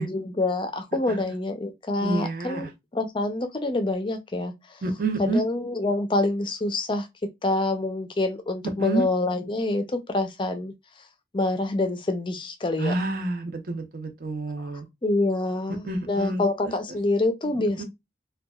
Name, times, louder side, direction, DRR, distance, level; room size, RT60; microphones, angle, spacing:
voice 1, 0.0-4.5 5.2-7.1 7.4-10.7 11.3-12.9 15.0-17.8, left 2 dB, 30° left, 0.4 m, -26 dB
voice 2, 2.0-2.7 4.8-5.4 8.8-9.0 12.8-14.8 15.8-16.4 17.8-17.9, right 2 dB, 50° right, 0.6 m, -28 dB
2.8 x 2.2 x 2.2 m
head